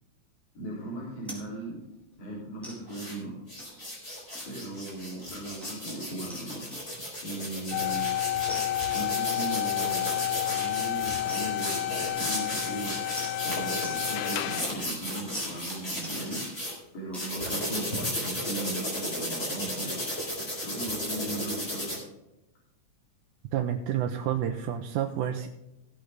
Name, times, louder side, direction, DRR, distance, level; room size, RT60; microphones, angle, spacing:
voice 1, 0.5-1.8 2.2-3.3 4.4-6.7 7.2-8.1 8.9-10.1 10.4-12.9 13.4-16.4 16.9-20.0 20.3-22.0, right 1 dB, 45° left, -6 dB, 4.7 m, -38 dB
sound 1, 1.2-1.4 1.8-2.0 2.6-2.8 3.6-3.9 4.3-4.7 5.0-5.2 5.6-5.8 6.3-6.5 6.7-7.1 8.5-8.7 9.3-9.5 10.0-10.5 11.3-11.5 12.2-12.6 13.2-13.3 13.8-14.0 14.3-14.8 15.3-15.5 16.0-16.7 17.1-17.3, equal, ahead, 3.9 m, -44 dB
sound 2, 2.9-3.1 3.5-16.7 17.1-22.0, equal, 20° left, 4.4 m, -34 dB
sound 3, 7.7-14.9, left 14 dB, 80° left, 2.2 m, -30 dB
voice 2, 23.5-25.5, right 10 dB, 90° right, 3 dB, 2.3 m, -29 dB
17.0 x 8.6 x 3.7 m, 0.95 s
omnidirectional pair, 3.6 m